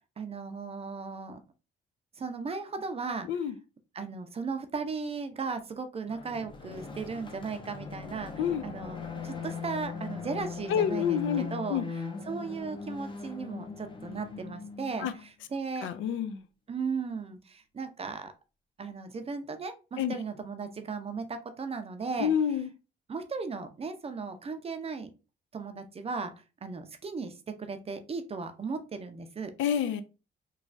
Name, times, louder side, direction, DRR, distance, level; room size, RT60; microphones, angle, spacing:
voice 1, 0.2-1.4 2.2-3.3 4.0-8.3 8.6-9.0 9.2-11.8 12.3-15.1 15.5-15.9 16.7-18.3 18.8-22.3 23.1-25.1 25.5-26.3 26.6-29.5, right 4 dB, 30° right, 0.5 m, -36 dB
voice 2, 3.2-3.5 8.4-8.6 10.7-11.8 15.0-15.1 15.8-16.4 20.0-20.2 22.2-22.7 29.6-30.0, left 8 dB, 80° left, 0.4 m, -28 dB
sound 1, 6.1-15.3, left 5 dB, 25° left, 0.6 m, -40 dB
3.2 x 2.3 x 2.5 m
cardioid pair, 90°, 20 cm